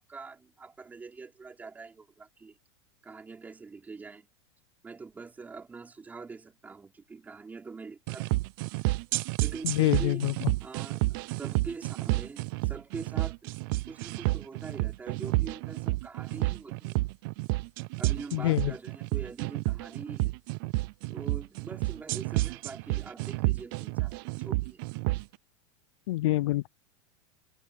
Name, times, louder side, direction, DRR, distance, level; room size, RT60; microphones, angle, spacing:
voice 1, 0.0-2.6 3.0-4.3 4.8-8.4 9.4-10.3 10.6-13.5 13.9-17.1 18.0-20.3 21.1-24.8, right 4 dB, 10° right, 4.5 m, -44 dB
sound 1, 8.1-25.2, right 22 dB, 45° right, 0.5 m, -30 dB
voice 2, 9.6-10.3 18.3-18.7 26.1-26.7, left 17 dB, 75° left, 0.4 m, -26 dB
supercardioid pair, 165°, 16 cm